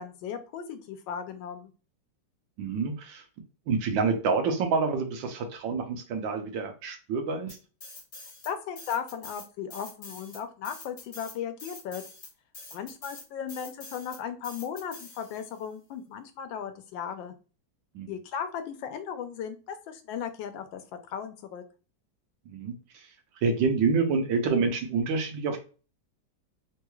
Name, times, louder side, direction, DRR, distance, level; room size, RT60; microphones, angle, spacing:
voice 1, 0.0-1.7 8.4-12.0 12.7-17.3 18.1-20.8 21.1-21.6, left 8 dB, 85° left, 8 dB, 1.3 m, -36 dB
voice 2, 2.6-3.2 3.7-7.6 17.9-18.1 22.5-23.0 23.4-25.6, right 4 dB, 90° right, 5 dB, 1.5 m, -27 dB
sound 1, 7.5-8.5 8.8-15.6, left 3 dB, 45° left, 0.4 m, -46 dB
3.7 x 3.0 x 2.3 m, 0.35 s
omnidirectional pair, 2.0 m